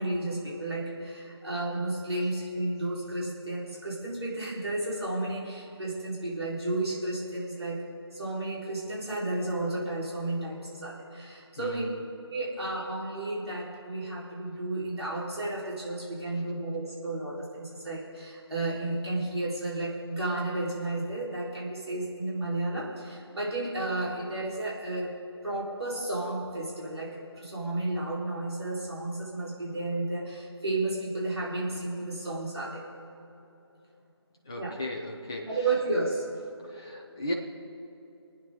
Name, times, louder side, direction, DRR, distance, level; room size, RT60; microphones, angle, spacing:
voice 1, 0.0-7.9 8.1-11.8 12.3-25.1 25.4-32.8 34.6-34.7 35.4-36.2, right 2 dB, 65° right, -6 dB, 4.1 m, -32 dB
voice 2, 11.6-12.0 34.4-35.6 36.7-37.3, left 1 dB, 10° left, -2 dB, 0.6 m, -36 dB
27.5 x 9.4 x 3.8 m, 2.9 s
figure-of-eight pair, 160°, 15 cm